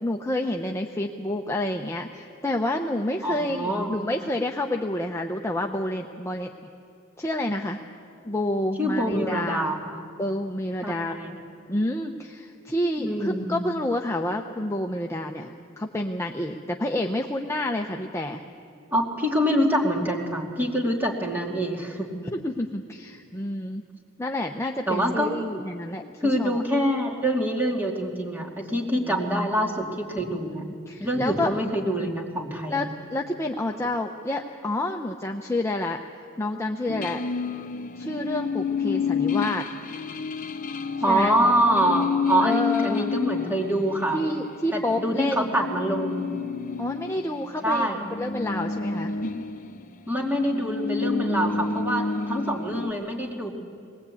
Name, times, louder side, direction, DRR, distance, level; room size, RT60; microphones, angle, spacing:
voice 1, 0.0-6.5 7.2-7.8 8.2-9.7 10.2-11.2 11.7-18.4 22.3-23.8 24.2-26.6 29.0-29.2 30.3-31.5 32.7-36.0 36.4-37.2 37.9-39.7 41.1-41.3 42.4-43.1 44.1-45.5 46.8-47.9 48.2-49.1, left 1 dB, 15° left, 2 dB, 0.7 m, -29 dB
voice 2, 3.2-3.9 8.8-9.9 10.8-11.4 13.0-13.5 18.9-22.1 24.9-25.3 26.2-30.6 31.0-32.9 41.0-44.2 44.7-46.3 47.6-48.0 50.1-53.6, equal, 10° right, -1 dB, 2.4 m, -25 dB
sound 1, 36.9-47.5 47.8-52.9, left 5 dB, 40° left, 0.9 m, -30 dB
20.5 x 20.0 x 8.4 m, 2.4 s
head